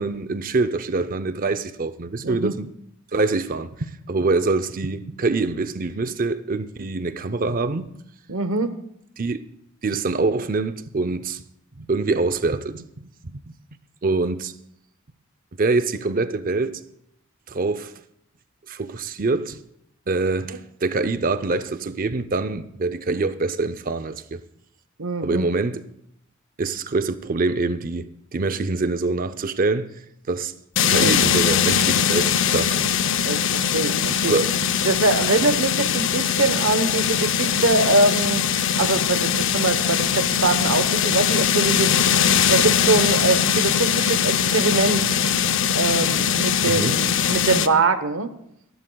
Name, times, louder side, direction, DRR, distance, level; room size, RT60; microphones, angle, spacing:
voice 1, 0.0-2.7 3.1-7.9 9.2-9.4 9.8-11.4 11.8-13.4 14.0-14.5 15.6-16.8 17.5-17.9 18.7-19.6 20.1-24.4 25.2-25.8 26.6-29.9 30.3-30.5 30.8-32.9 34.3-34.6 46.6-47.0, right 3 dB, 40° right, 0.6 m, -25 dB
voice 2, 2.2-2.5 8.3-8.8 25.0-25.4 31.0-31.1 33.2-34.3 34.8-38.4 38.8-41.9 42.2-45.0 45.7-48.3, right 3 dB, 70° right, 1.0 m, -23 dB
sound 1, 30.8-47.7, left 8 dB, 60° left, 0.6 m, -21 dB
28.5 x 11.0 x 2.3 m
head